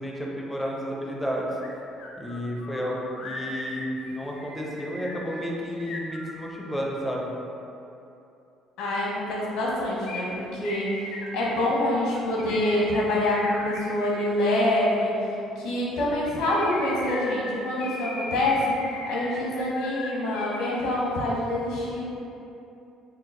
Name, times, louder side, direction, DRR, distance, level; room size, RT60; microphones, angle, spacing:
voice 1, 0.0-1.5 2.2-7.3, equal, 5° left, -3 dB, 0.4 m, -31 dB
sound 1, 1.6-1.7 2.0-6.8 10.0-14.3 16.1-20.7 21.0-21.1, left 2 dB, 60° left, 0.5 m, -38 dB
voice 2, 8.8-22.1, left 1 dB, 80° left, -5 dB, 0.9 m, -26 dB
4.5 x 2.0 x 3.7 m, 2.8 s
cardioid pair, 170°, 0 cm